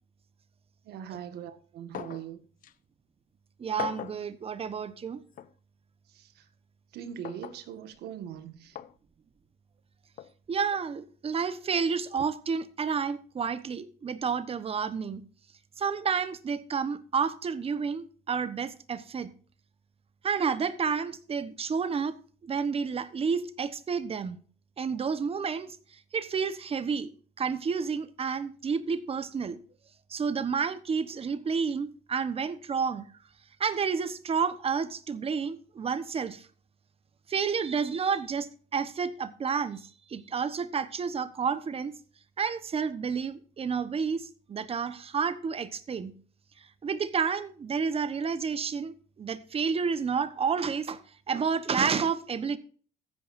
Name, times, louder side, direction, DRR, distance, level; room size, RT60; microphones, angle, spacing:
voice 1, 0.9-2.4 6.2-6.3 6.9-8.8, right 9 dB, 75° right, 1.7 m, -41 dB
sound 1, 1.9-2.3 2.6-2.7 3.8-4.2 5.4-5.5 7.2-7.6 8.8-8.9 10.2-10.3, left 11 dB, 55° left, 0.7 m, -39 dB
voice 2, 3.6-5.2 10.5-15.2 15.8-19.3 20.2-22.2 22.4-24.4 24.8-25.8 26.1-27.1 27.4-29.6 30.1-33.1 33.6-36.4 37.3-41.9 42.4-46.1 46.8-51.0 51.3-52.6, right 6 dB, 35° right, 1.1 m, -30 dB
14.5 x 10.5 x 2.6 m
cardioid pair, 110°, 17 cm